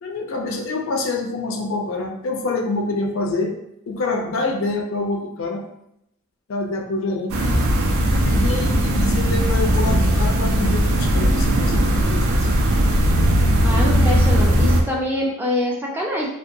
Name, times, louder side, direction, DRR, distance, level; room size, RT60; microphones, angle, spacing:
voice 1, 0.0-3.6 3.9-5.7 6.5-12.2, left 2 dB, 65° left, 3 dB, 0.4 m, -26 dB
sound 1, 7.3-14.8, equal, 75° right, 0.4 m, -18 dB
voice 2, 13.6-16.3, left 1 dB, 10° right, -3 dB, 0.3 m, -24 dB
2.7 x 2.2 x 2.5 m, 0.79 s
head